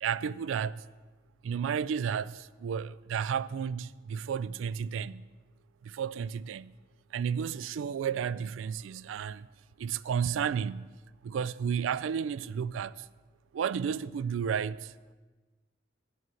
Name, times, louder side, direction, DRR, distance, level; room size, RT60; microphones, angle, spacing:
voice 1, 0.0-0.8 1.4-5.2 5.8-6.7 7.1-9.5 9.8-10.9 11.2-13.1 13.5-15.1, right 7 dB, 80° right, 0.3 m, -32 dB
8.4 x 7.7 x 7.5 m
head